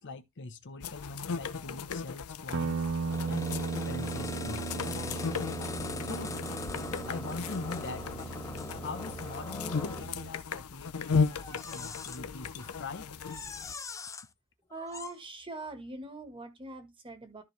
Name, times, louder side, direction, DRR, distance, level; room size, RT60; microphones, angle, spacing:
voice 1, 0.0-2.8 3.3-4.6 6.0-6.4 7.1-8.4 8.8-13.1, left 3 dB, 55° left, 0.9 m, -42 dB
sound 1, 0.8-13.7, left 5 dB, 90° left, 0.7 m, -36 dB
Guitar, 2.5-10.4, right 4 dB, 65° right, 0.6 m, -37 dB
sound 2, 3.1-10.1 11.3-12.2 12.6-12.8 13.2-14.3 14.7-15.2, left 3 dB, 15° left, 0.4 m, -41 dB
voice 2, 14.7-17.4, right 2 dB, 25° right, 1.6 m, -43 dB
13.0 x 4.5 x 3.3 m
head